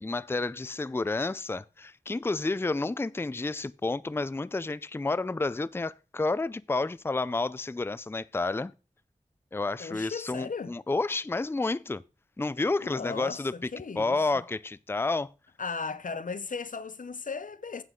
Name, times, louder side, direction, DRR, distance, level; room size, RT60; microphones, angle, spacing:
voice 1, 0.0-8.7 9.5-12.0 12.4-13.7 14.0-15.3, left 3 dB, 20° left, 0.4 m, -30 dB
voice 2, 9.8-10.7 12.8-14.2 15.6-17.8, left 5 dB, 85° left, 0.7 m, -36 dB
9.5 x 8.1 x 3.8 m
wide cardioid pair, 60°, 13 cm